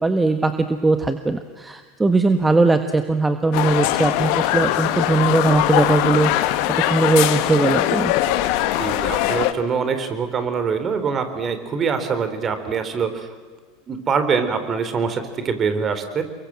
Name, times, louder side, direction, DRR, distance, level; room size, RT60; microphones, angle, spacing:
voice 1, 0.0-8.1, right 3 dB, 15° right, 8 dB, 1.5 m, -20 dB
sound 1, 3.5-9.5, left 14 dB, 60° left, 1.6 m, -21 dB
voice 2, 8.8-13.3 13.9-16.2, right 5 dB, 30° right, 9 dB, 3.8 m, -24 dB
29.0 x 23.0 x 7.7 m, 1.5 s
hypercardioid pair, 80°, 0 cm